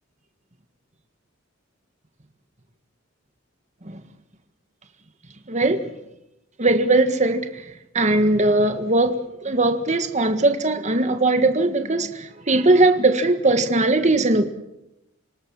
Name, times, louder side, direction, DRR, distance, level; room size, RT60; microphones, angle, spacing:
voice 1, 5.5-5.9 6.6-7.6 7.9-14.5, right 2 dB, 35° right, 1.7 m, -19 dB
27.0 x 18.5 x 7.3 m
head